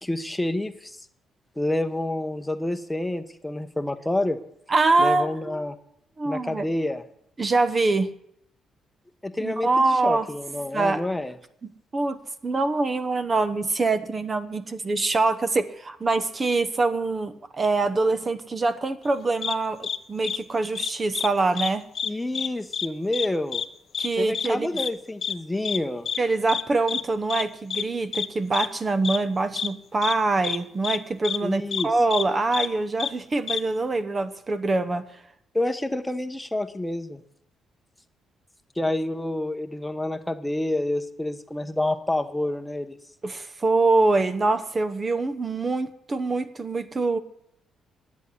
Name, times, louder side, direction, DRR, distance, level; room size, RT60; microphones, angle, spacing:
voice 1, 0.0-1.0 1.6-4.4 5.0-5.8 6.2-7.0 9.2-9.7 10.0-11.3 22.0-23.6 24.2-26.1 31.4-31.9 35.5-37.2 38.8-43.0, left 1 dB, 10° left, 9 dB, 1.0 m, -28 dB
voice 2, 4.7-5.6 6.2-6.6 7.4-8.1 9.4-10.3 10.7-11.0 11.6-21.9 24.0-24.8 26.2-35.0 43.2-47.2, right 3 dB, 30° right, 12 dB, 1.0 m, -24 dB
sound 1, 19.4-19.5 19.8-20.0 20.2-20.4 20.7-21.3 21.5-21.7 21.9-22.5 22.7-22.9 23.1-23.3 23.5-23.6 23.9-24.1 24.3-24.5 24.8-24.9 25.2-25.3 25.6-25.8 26.1-26.2 26.5-26.6 26.9-27.0 27.3-27.4 27.7-27.8 28.1-28.3 28.5-28.7 29.0-29.2 29.6-29.7 30.0-30.1 30.4-30.6 30.8-31.0 31.2-31.4 31.7-31.8 32.1-32.2 32.5-32.7 33.0-33.1 33.5-33.6, left 7 dB, 55° left, 0.7 m, -28 dB
11.0 x 8.4 x 9.6 m, 0.75 s
cardioid pair, 90°, 0 cm